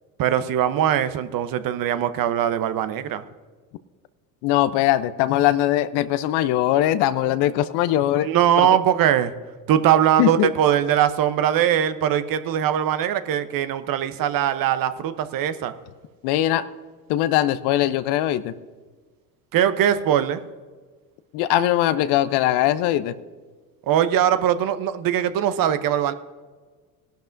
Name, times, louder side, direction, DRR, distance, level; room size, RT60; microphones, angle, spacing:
voice 1, 0.2-3.2 8.2-9.3 9.7-15.7 19.5-20.4 23.9-26.1, right 10 dB, 45° right, 11 dB, 0.9 m, -21 dB
voice 2, 4.4-8.3 10.2-10.5 16.2-16.7 17.1-18.5 21.3-23.1, left 13 dB, 55° left, 14 dB, 0.8 m, -21 dB
19.0 x 11.5 x 2.6 m, 1.4 s
hypercardioid pair, 70°, 47 cm